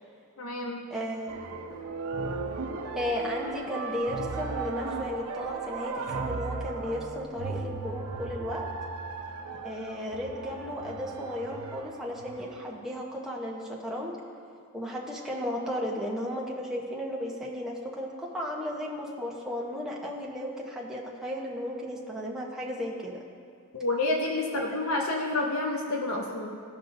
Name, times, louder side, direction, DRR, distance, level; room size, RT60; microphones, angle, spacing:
voice 1, 0.4-0.9 23.7-26.6, left 2 dB, 70° left, 0 dB, 0.8 m, -29 dB
voice 2, 0.9-1.4 2.9-8.7 9.6-14.2 14.7-23.2, equal, ahead, -4 dB, 0.9 m, -34 dB
sound 1, 1.3-12.6, right 4 dB, 85° right, 0.6 m, -36 dB
15.5 x 5.4 x 2.6 m, 2.3 s
head